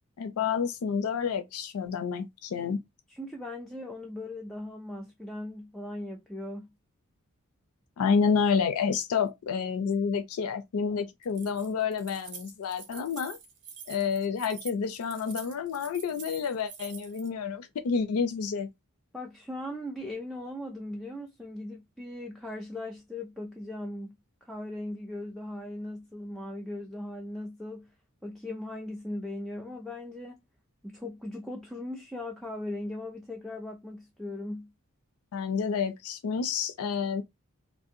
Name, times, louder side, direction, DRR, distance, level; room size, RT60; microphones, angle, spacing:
voice 1, 0.2-2.8 8.0-13.4 13.9-18.7 35.3-37.2, left 6 dB, 70° left, 0.4 m, -29 dB
voice 2, 3.1-6.7 19.1-24.2 24.4-27.9 28.2-30.4 30.8-34.7, left 1 dB, ahead, 0.3 m, -38 dB
Keys jangling, 11.2-17.3, right 6 dB, 55° right, 0.7 m, -46 dB
2.5 x 2.1 x 2.6 m
head